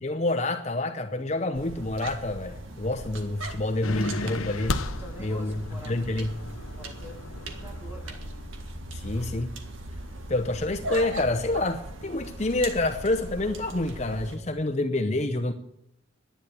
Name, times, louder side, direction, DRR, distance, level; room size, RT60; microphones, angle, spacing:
voice 1, 0.0-4.8 5.2-6.3 8.9-9.5 10.3-15.5, left 2 dB, 35° left, 0.7 m, -28 dB
sound 1, 1.5-14.4, right 1 dB, 70° right, 1.8 m, -39 dB
sound 2, 3.8-8.7, left 2 dB, 90° left, 0.9 m, -35 dB
voice 2, 5.0-6.2 6.7-8.2, right 1 dB, 10° right, 2.0 m, -47 dB
11.0 x 10.0 x 8.6 m
head